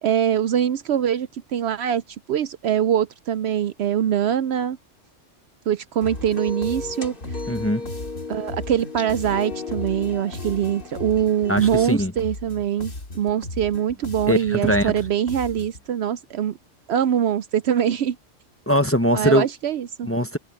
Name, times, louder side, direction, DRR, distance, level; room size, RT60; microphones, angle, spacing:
voice 1, 0.0-2.0 2.3-4.8 5.7-7.4 8.3-16.6 16.9-18.2 19.1-20.1, right 9 dB, 65° right, 0.8 m, -23 dB
sound 1, 6.0-15.9, left 1 dB, 90° left, 3.6 m, -36 dB
sound 2, 6.0-11.8, left 4 dB, 45° left, 2.2 m, -35 dB
voice 2, 7.5-7.8 11.5-12.1 14.3-14.9 18.7-19.5 20.1-20.4, equal, 15° left, 0.8 m, -21 dB
omnidirectional pair, 1.3 m